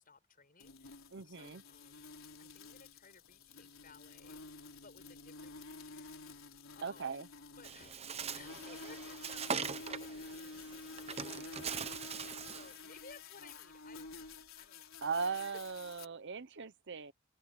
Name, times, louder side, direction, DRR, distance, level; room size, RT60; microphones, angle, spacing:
voice 1, 0.0-2.1 2.4-7.3 7.5-15.7, left 4 dB, 45° left, 7.1 m, -60 dB
sound 1, 0.6-16.1, left 3 dB, 75° left, 3.9 m, -50 dB
voice 2, 1.1-1.6 6.8-7.3 15.0-17.1, right 5 dB, 60° right, 0.9 m, -39 dB
Bird, 7.6-12.8, right 6 dB, 30° right, 0.8 m, -42 dB
open air
head